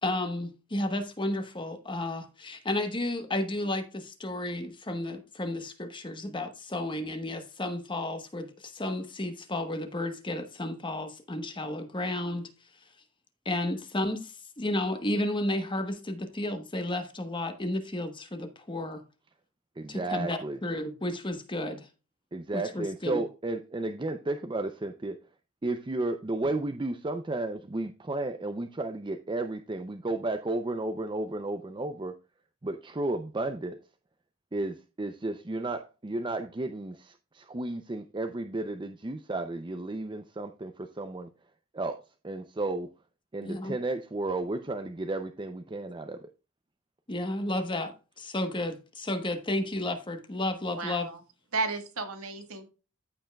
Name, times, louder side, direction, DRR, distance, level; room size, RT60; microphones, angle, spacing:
voice 1, 0.0-12.5 13.4-19.0 19.9-21.9 22.5-23.2 43.4-43.8 47.1-51.1, left 1 dB, 20° left, 1.2 m, -32 dB
voice 2, 19.8-20.6 22.3-25.2 25.6-32.2 32.6-33.8 34.5-41.3 41.7-42.9 43.3-46.2, right 2 dB, 20° right, 0.5 m, -33 dB
voice 3, 50.8-51.2 51.5-52.7, right 3 dB, 75° right, 1.7 m, -33 dB
14.5 x 5.4 x 2.3 m
head